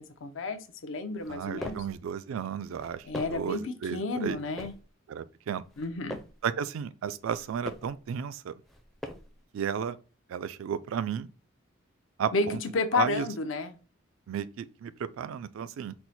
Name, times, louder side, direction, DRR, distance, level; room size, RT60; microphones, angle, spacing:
voice 1, 0.0-1.8 3.1-4.7 5.8-6.2 12.3-13.7, left 3 dB, 65° left, 0.5 m, -31 dB
sound 1, 1.2-2.0 2.7-3.5 4.2-4.9 5.6-6.4 7.2-8.0 8.6-9.4, equal, ahead, 0.4 m, -43 dB
voice 2, 1.3-4.4 5.1-5.6 6.4-8.5 9.5-10.0 10.3-11.3 12.2-12.6 12.9-13.3 14.3-15.9, right 7 dB, 75° right, 0.3 m, -33 dB
4.4 x 2.1 x 4.0 m
head